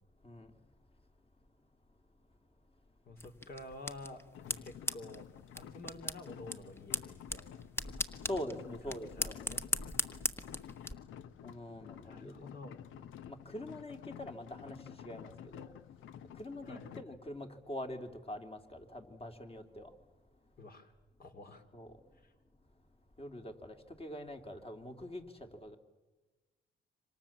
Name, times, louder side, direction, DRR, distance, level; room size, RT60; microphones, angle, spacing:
voice 1, 3.0-5.2 5.5-7.6 8.9-9.6 12.0-12.8 16.6-17.0 20.6-20.9 21.2-21.6 22.2-22.3, left 2 dB, 50° left, 6 dB, 3.5 m, -50 dB
sound 1, 3.2-10.9, left 1 dB, 10° left, 1.4 m, -40 dB
sound 2, 4.3-17.0, left 10 dB, 80° left, 0.9 m, -51 dB
voice 2, 8.3-9.4 11.4-12.3 13.3-14.8 15.0-15.7 16.4-19.9 21.7-21.9 23.2-25.8, left 1 dB, 30° left, 5 dB, 3.1 m, -44 dB
27.0 x 26.0 x 7.4 m, 1.2 s
cardioid pair, 90°, 20 cm